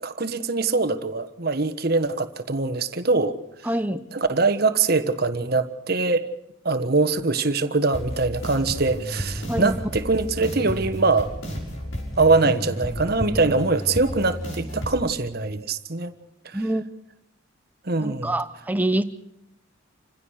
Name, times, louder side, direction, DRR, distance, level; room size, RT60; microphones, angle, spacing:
voice 1, 0.0-3.4 4.1-6.2 6.6-11.3 12.2-16.1 16.4-16.6 17.8-18.4, right 3 dB, 50° right, 10 dB, 1.4 m, -23 dB
voice 2, 3.6-4.1 9.5-9.7 16.5-16.8 18.0-19.0, right 1 dB, 10° right, 11 dB, 0.7 m, -25 dB
sound 1, 7.9-14.9, equal, 70° left, 6.5 m, -32 dB
28.0 x 16.0 x 6.5 m, 0.84 s
head